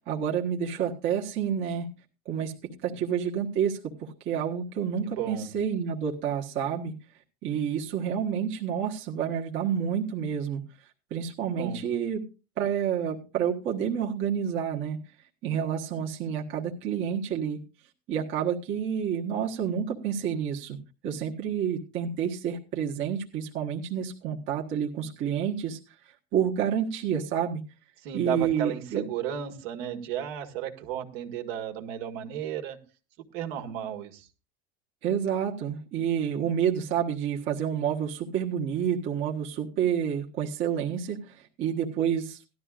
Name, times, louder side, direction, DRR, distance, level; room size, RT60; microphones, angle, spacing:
voice 1, 0.1-1.9 2.2-6.9 7.4-10.6 11.1-12.2 12.6-15.0 15.4-17.6 18.1-20.8 21.0-25.8 26.3-27.6 28.1-29.0 35.0-42.4, right 8 dB, 40° right, -1 dB, 1.4 m, -29 dB
voice 2, 5.0-5.5 11.5-11.8 28.0-32.8 33.2-34.3, right 10 dB, 65° right, 6 dB, 1.9 m, -34 dB
17.0 x 12.0 x 2.5 m, 0.32 s
supercardioid pair, 150°, 33 cm